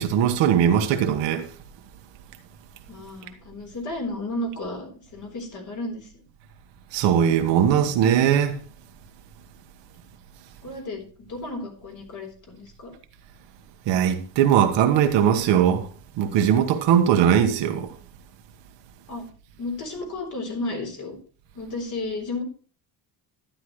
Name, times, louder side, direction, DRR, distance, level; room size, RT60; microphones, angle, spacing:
voice 1, 0.0-1.4 6.9-8.6 13.9-15.8 16.2-17.9, right 9 dB, 85° right, 1.4 m, -20 dB
voice 2, 2.9-6.1 10.6-11.0 11.3-12.9 19.1-19.3 19.6-21.2 21.5-22.4, left 2 dB, 45° left, 3.9 m, -33 dB
12.0 x 10.5 x 3.2 m
cardioid pair, 145°, 42 cm